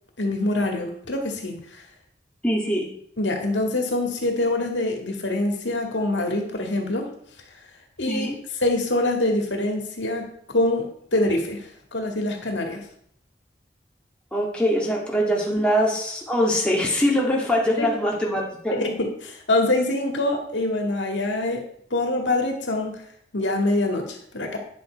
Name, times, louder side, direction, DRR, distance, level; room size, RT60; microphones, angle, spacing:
voice 1, 0.2-1.8 3.2-7.1 8.0-12.8 17.8-17.9 18.7-23.0 23.3-24.6, left 2 dB, 80° left, 3 dB, 2.0 m, -25 dB
voice 2, 2.4-2.9 8.1-8.3 14.3-18.8, equal, 5° left, -3 dB, 1.8 m, -23 dB
9.9 x 7.0 x 4.6 m, 0.66 s
head